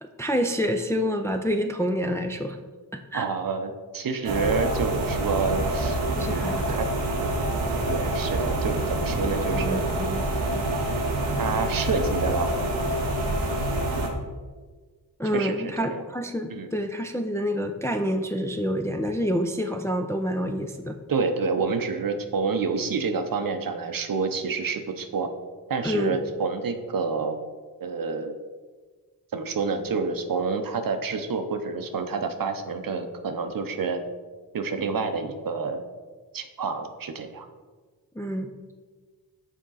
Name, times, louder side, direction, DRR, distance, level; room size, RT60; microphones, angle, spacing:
voice 1, 0.0-2.6 3.1-3.3 6.1-6.8 9.5-10.2 15.2-21.0 25.8-26.3 38.2-38.5, equal, 5° left, 5 dB, 0.4 m, -27 dB
voice 2, 3.1-6.9 7.2-7.4 7.9-9.8 11.4-12.5 15.3-16.0 16.5-16.7 21.1-25.3 25.7-27.4 27.8-28.3 29.3-34.0 34.5-35.8 36.3-37.5, right 4 dB, 50° right, 8 dB, 0.7 m, -28 dB
sound 1, 4.2-14.1, right 1 dB, 90° right, 1.0 m, -26 dB
6.3 x 3.7 x 4.0 m, 1.4 s
cardioid pair, 45°, 43 cm